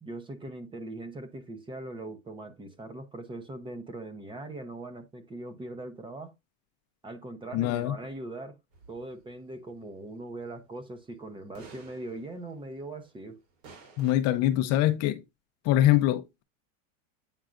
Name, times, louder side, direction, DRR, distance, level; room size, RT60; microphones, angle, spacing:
voice 1, 0.0-6.3 7.0-8.6 8.9-13.4, right 2 dB, 15° right, 0.8 m, -41 dB
voice 2, 7.5-7.9 14.0-15.2 15.6-16.4, left 13 dB, 40° left, 0.7 m, -24 dB
sound 1, 8.7-10.5 10.8-10.9 11.5-13.4 13.6-14.1, right 4 dB, 80° right, 4.6 m, -52 dB
9.0 x 4.7 x 2.5 m
supercardioid pair, 140°, 39 cm